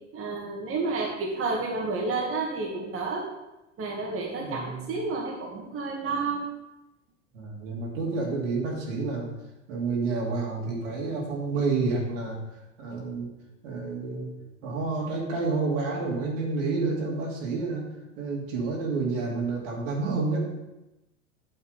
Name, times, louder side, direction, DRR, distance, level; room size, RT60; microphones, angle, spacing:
voice 1, 0.1-3.3 3.8-6.4, right 3 dB, 35° right, -2 dB, 2.1 m, -30 dB
voice 2, 4.4-4.9 7.3-9.3 9.7-12.4 12.8-13.3 13.6-14.3 14.6-17.8 18.2-20.4, right 3 dB, 75° right, -3 dB, 3.0 m, -29 dB
9.0 x 7.1 x 4.0 m, 0.95 s
hypercardioid pair, 90°, 40 cm